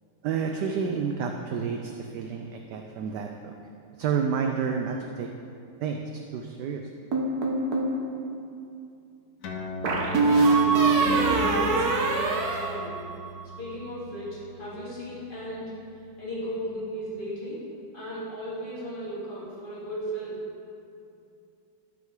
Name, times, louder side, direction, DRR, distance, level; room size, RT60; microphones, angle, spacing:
voice 1, 0.2-3.6 3.9-5.3 5.8-6.9, right 6 dB, 75° right, 3 dB, 1.0 m, -30 dB
sound 1, 7.1-7.9 9.8-13.5, right 3 dB, 55° right, 1.3 m, -23 dB
sound 2, 9.4-16.4, right 1 dB, 60° left, 1.1 m, -41 dB
voice 2, 10.1-13.0 13.6-15.7 16.2-17.6 17.9-20.4, equal, 25° left, -8 dB, 2.5 m, -35 dB
12.0 x 5.9 x 3.7 m, 2.6 s
omnidirectional pair, 2.2 m